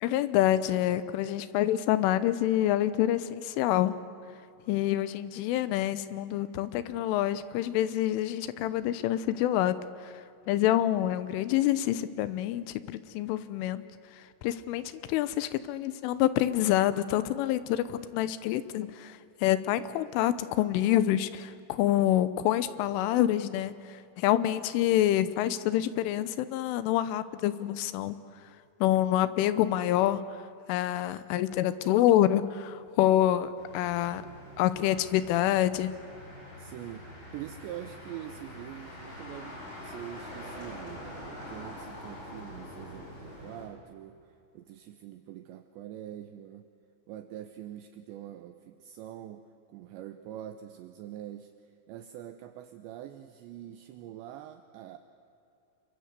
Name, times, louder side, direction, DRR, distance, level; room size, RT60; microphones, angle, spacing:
voice 1, 0.0-4.0 4.7-13.8 14.1-28.2 28.8-34.2 34.6-35.9, left 13 dB, 85° left, 14 dB, 3.4 m, -27 dB
Motor vehicle (road), 33.6-43.7, left 1 dB, 25° left, 6.9 m, -45 dB
voice 2, 36.6-46.7 47.1-51.5 51.9-55.0, right 11 dB, 75° right, 8 dB, 2.9 m, -44 dB
28.0 x 23.0 x 8.2 m, 2.7 s
omnidirectional pair, 5.6 m